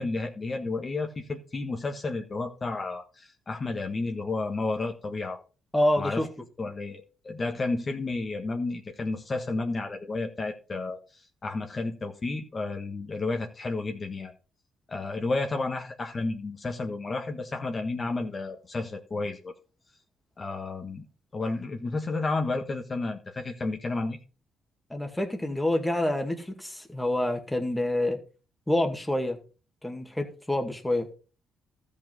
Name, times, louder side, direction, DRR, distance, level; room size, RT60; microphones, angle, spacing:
voice 1, 0.0-5.4 6.0-6.2 6.6-14.3 14.9-19.5 20.4-21.0 21.3-24.2, left 3 dB, 35° left, 3 dB, 1.5 m, -32 dB
voice 2, 5.7-6.3 24.9-28.2 28.7-29.4 29.8-31.1, left 1 dB, 5° left, 4 dB, 2.0 m, -27 dB
13.5 x 5.4 x 5.6 m, 0.35 s
cardioid pair, 90°, 0 cm